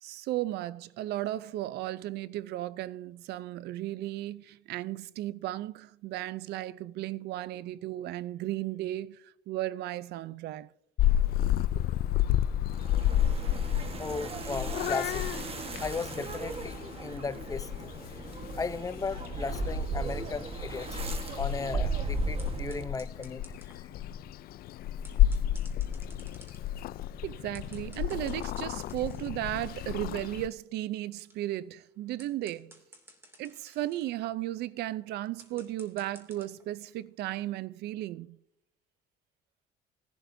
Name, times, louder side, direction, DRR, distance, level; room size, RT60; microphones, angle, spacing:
voice 1, 0.0-10.7 27.2-32.8 33.4-38.4, right 14 dB, 75° right, 0.5 m, -35 dB
Purr / Meow, 11.0-30.5, left 11 dB, 60° left, 0.4 m, -32 dB
sound 1, 12.7-23.1, right 4 dB, 35° right, 1.4 m, -37 dB
voice 2, 14.0-15.3 15.8-18.0 18.6-20.9 21.4-23.4, left 4 dB, 20° left, 0.7 m, -36 dB
sound 2, 22.4-24.0 24.9-36.7 37.1-37.6, right 1 dB, 15° right, 2.6 m, -57 dB
20.0 x 11.5 x 2.7 m
cardioid pair, 110°, 17 cm